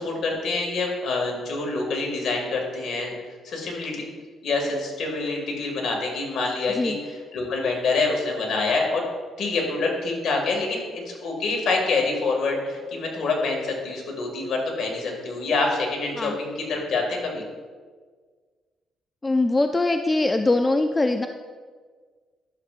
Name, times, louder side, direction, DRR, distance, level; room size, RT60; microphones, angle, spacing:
voice 1, 0.0-3.1 3.4-4.0 4.4-7.0 7.3-9.0 9.4-17.4, left 3 dB, 65° left, 0 dB, 2.0 m, -26 dB
voice 2, 19.2-21.3, left 2 dB, 20° left, 6 dB, 0.4 m, -22 dB
11.5 x 6.7 x 2.5 m, 1.5 s
cardioid pair, 90°, 0 cm